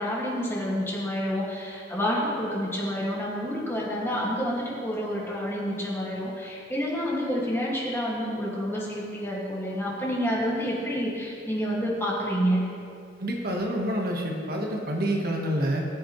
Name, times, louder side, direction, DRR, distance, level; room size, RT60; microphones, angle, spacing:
voice 1, 0.0-12.6, equal, 15° left, -5 dB, 2.0 m, -28 dB
voice 2, 13.2-15.9, right 1 dB, 55° right, 0 dB, 1.3 m, -27 dB
18.5 x 7.1 x 3.1 m, 2.5 s
head